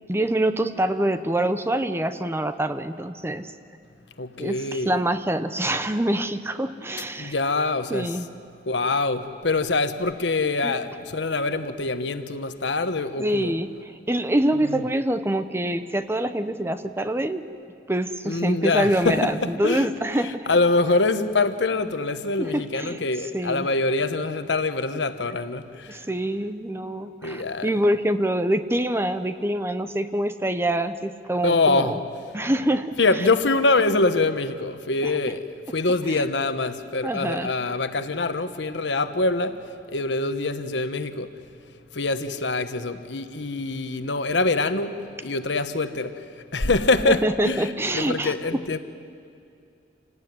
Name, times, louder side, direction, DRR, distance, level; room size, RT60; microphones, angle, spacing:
voice 1, 0.1-3.5 4.4-7.3 7.9-8.3 10.6-10.7 13.2-17.4 17.9-20.5 22.4-23.0 23.3-23.7 25.9-32.0 32.3-33.0 35.0-35.1 36.1-36.2 37.0-37.5 47.1-48.6, right 1 dB, 15° right, 0.8 m, -25 dB
voice 2, 4.2-4.9 7.2-8.2 8.7-13.5 14.7-14.8 18.2-19.9 20.2-26.1 27.2-27.7 31.4-32.0 33.0-41.3 41.9-48.8, left 3 dB, 80° left, 1.2 m, -24 dB
27.5 x 18.0 x 9.6 m
head